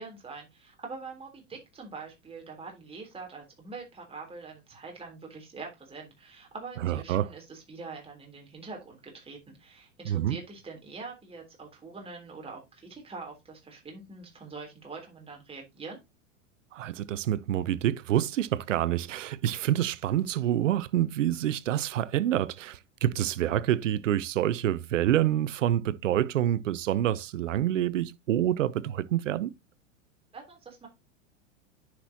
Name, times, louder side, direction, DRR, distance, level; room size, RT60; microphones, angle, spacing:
voice 1, 0.0-16.0 30.3-30.9, right 4 dB, 15° right, 3.4 m, -44 dB
voice 2, 6.8-7.3 10.0-10.4 16.7-29.5, right 12 dB, 85° right, 0.7 m, -27 dB
10.0 x 6.1 x 2.8 m
hypercardioid pair, 105°, 37 cm